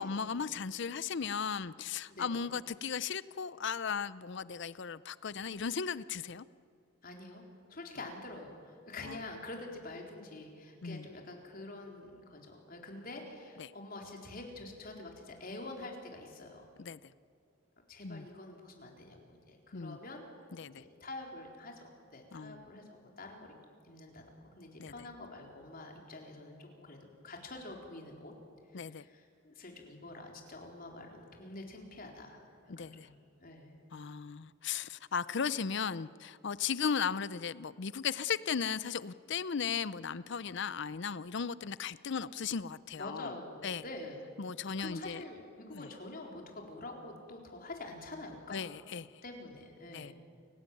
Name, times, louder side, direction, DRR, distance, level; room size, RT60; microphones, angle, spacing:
voice 1, 0.0-6.5 9.0-9.2 10.8-11.1 13.6-13.7 16.8-17.1 18.0-18.3 19.7-20.0 20.5-20.8 22.3-22.6 24.8-24.9 28.7-29.1 32.7-33.1 33.9-43.3 43.6-43.8 44.4-45.2 45.7-45.9 48.5-49.1 49.9-50.1, left 6 dB, 65° left, 17 dB, 0.6 m, -36 dB
voice 2, 7.0-7.4 7.7-16.7 17.9-20.2 20.7-23.5 23.8-24.2 24.6-28.3 28.7-32.4 32.8-33.1 33.4-33.7 43.0-44.2 44.8-48.7 49.2-50.1, left 2 dB, 50° left, 1 dB, 4.2 m, -46 dB
29.0 x 17.5 x 9.2 m, 2.4 s
head